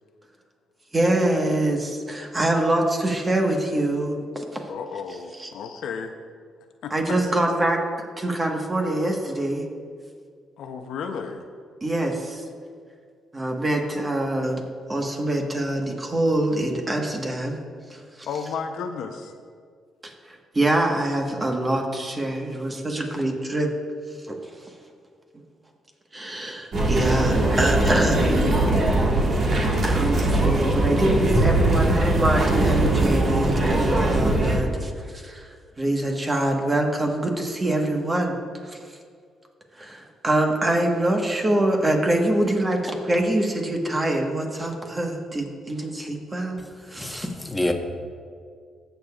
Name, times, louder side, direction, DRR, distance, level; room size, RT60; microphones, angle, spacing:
voice 1, 0.9-4.4 5.1-5.5 6.9-7.8 8.2-9.6 11.8-12.4 13.3-14.6 14.9-17.6 17.9-18.6 20.5-23.7 24.3-24.4 26.1-28.3 28.8-28.9 29.9-38.4 38.6-38.8 39.8-46.6 46.9-47.3, right 1 dB, 25° right, 1.3 m, -25 dB
voice 2, 4.7-6.1 6.8-7.5 10.6-11.4 18.3-19.3, left 6 dB, 75° left, 0.7 m, -33 dB
sound 1, 26.7-34.6, right 1 dB, 50° right, 1.6 m, -21 dB
voice 3, 47.0-47.7, left 1 dB, 10° left, 1.1 m, -27 dB
19.0 x 6.8 x 2.4 m
cardioid pair, 90°, 0 cm